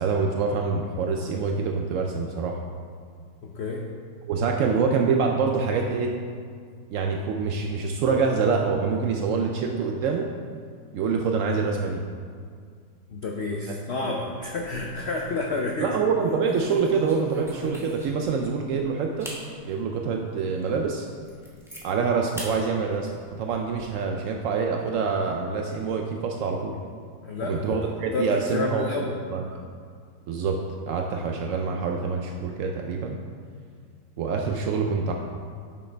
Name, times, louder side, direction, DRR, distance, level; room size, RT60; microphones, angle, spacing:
voice 1, 0.0-2.6 4.3-6.1 6.9-10.3 10.9-12.0 14.1-14.2 15.8-19.3 19.6-21.1 21.8-23.1 23.4-26.8 27.4-29.1 29.3-29.4 30.3-30.6 30.9-33.2 34.2-35.1, right 5 dB, 80° right, 2 dB, 0.7 m, -26 dB
voice 2, 3.4-3.8 13.1-15.9 27.2-27.8 28.1-29.1, left 3 dB, 70° left, 0 dB, 0.6 m, -29 dB
sound 1, 14.4-15.1 15.4-15.7 16.2-18.3 18.7-18.8 19.2-19.4 20.0-20.1 20.6-20.7 21.0-21.8 22.4-22.5 22.9-23.8, equal, ahead, 0.9 m, -38 dB
9.0 x 6.4 x 3.3 m, 2.1 s
omnidirectional pair, 1.9 m